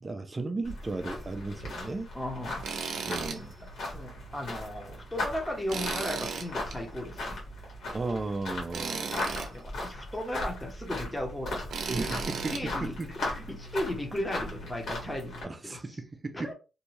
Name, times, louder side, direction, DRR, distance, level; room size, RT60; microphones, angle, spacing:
voice 1, 0.0-2.1 3.1-3.5 7.9-9.3 11.9-13.1 15.4-16.5, right 3 dB, 25° right, 0.4 m, -35 dB
sound 1, 0.6-15.4, left 2 dB, 65° left, 1.4 m, -38 dB
voice 2, 2.1-2.7 3.9-7.4 9.3-12.2 12.5-16.0 16.3-16.5, left 1 dB, 10° left, 0.8 m, -36 dB
Tools, 2.6-3.4 3.8-3.9 5.7-6.8 8.7-9.5 11.7-12.6, right 5 dB, 75° right, 0.5 m, -35 dB
2.6 x 2.3 x 3.1 m
cardioid pair, 125°, 0 cm